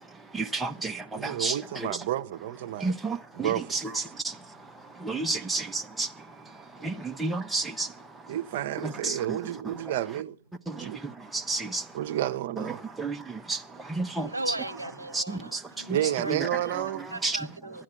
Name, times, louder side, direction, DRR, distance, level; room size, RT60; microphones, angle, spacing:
voice 1, 0.3-2.0 2.8-4.4 4.9-6.3 6.8-8.0 8.8-9.4 10.7-11.9 12.6-14.5 15.1-16.0 16.3-16.4 17.2-17.4, right 3 dB, 5° right, 0.7 m, -32 dB
voice 2, 1.2-2.9 3.3-3.9 5.4-5.5 8.3-10.4 10.8-11.0 11.9-12.8 15.9-17.1, right 12 dB, 45° right, 0.8 m, -31 dB
voice 3, 14.1-16.5 17.1-17.8, right 2 dB, 85° right, 0.7 m, -37 dB
11.5 x 10.5 x 7.4 m
figure-of-eight pair, 115°, 0 cm